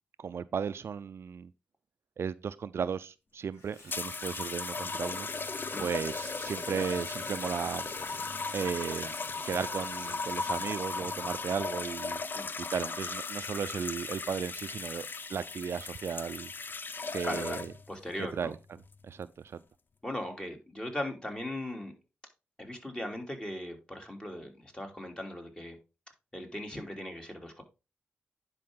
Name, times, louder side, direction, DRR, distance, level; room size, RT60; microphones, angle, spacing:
voice 1, 0.2-1.5 2.2-5.3 5.8-7.9 8.5-9.2 9.5-12.2 12.6-16.5 17.1-17.7 18.3-18.6 19.0-19.6, right 7 dB, 65° right, 0.4 m, -35 dB
Water tap faucet / Sink (filling or washing), 3.5-12.8, left 2 dB, 85° left, 2.7 m, -50 dB
sound 1, 3.9-17.9 18.8-19.1, left 4 dB, 45° left, 0.6 m, -37 dB
voice 2, 17.2-17.6 17.9-18.5 20.0-21.9 22.6-25.8 26.3-27.6, left 1 dB, 20° left, 2.8 m, -38 dB
10.5 x 4.9 x 3.7 m
cardioid pair, 60°, 5 cm